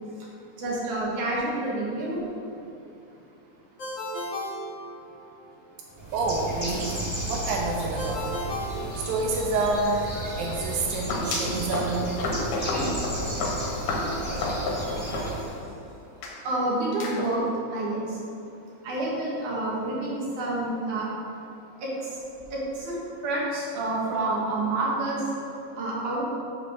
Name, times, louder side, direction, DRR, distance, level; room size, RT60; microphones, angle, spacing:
voice 1, 0.6-2.3 12.6-12.9 16.4-17.4 17.7-18.2 18.8-21.1 21.8-22.1 22.5-23.0 23.2-25.3 25.8-26.2, right 2 dB, 65° right, -5 dB, 3.1 m, -28 dB
Ringtone, 3.8-5.5 8.0-9.6, left 1 dB, 45° left, 0.9 m, -35 dB
Bird, 6.0-15.6, right 1 dB, 20° right, 0.8 m, -33 dB
voice 2, 6.1-8.4 8.9-12.2, right 3 dB, 85° right, 0 dB, 2.5 m, -28 dB
sound 1, 10.9-15.7 16.2-16.4 17.0-17.3, left 2 dB, 75° left, 2.8 m, -31 dB
8.3 x 4.4 x 6.8 m, 2.9 s
omnidirectional pair, 3.9 m